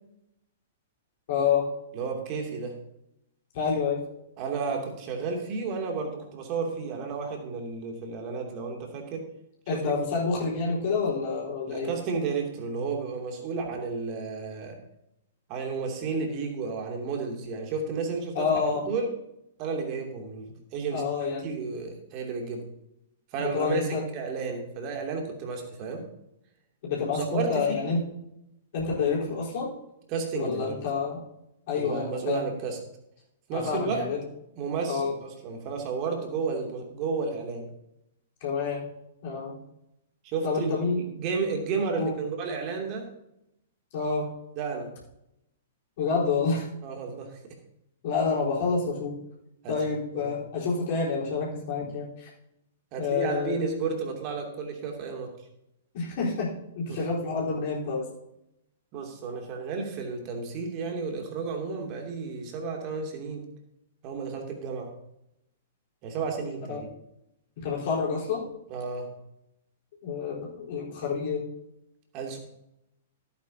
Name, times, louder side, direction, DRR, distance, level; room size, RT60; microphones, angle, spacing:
voice 1, 1.3-1.7 3.5-4.0 9.7-11.9 18.3-18.8 20.9-21.5 23.4-24.0 26.8-28.0 28.7-29.7 30.3-31.2 31.7-32.5 33.5-34.2 34.9-35.2 38.4-38.8 39.2-39.6 40.4-41.0 42.0-42.2 43.9-44.4 46.0-46.7 48.0-49.2 49.7-52.3 53.0-53.6 55.9-58.1 66.7-66.8 67.6-68.5 70.0-71.5, left 5 dB, 45° left, -5 dB, 4.1 m, -28 dB
voice 2, 1.9-2.7 4.4-9.2 9.7-10.0 11.7-14.8 15.5-18.5 18.9-19.1 19.6-21.0 21.4-22.7 23.3-23.8 24.1-26.0 27.1-27.9 30.1-30.8 31.7-32.8 33.5-34.0 34.6-37.7 40.2-43.1 44.6-44.9 46.8-47.5 49.6-49.7 50.1-50.3 52.9-55.3 56.9-57.0 58.9-63.4 64.0-64.9 66.0-66.9 68.7-69.1 72.1-72.4, right 4 dB, 35° right, 2 dB, 2.7 m, -32 dB
15.5 x 9.2 x 2.8 m, 0.82 s
figure-of-eight pair, 110°, 0 cm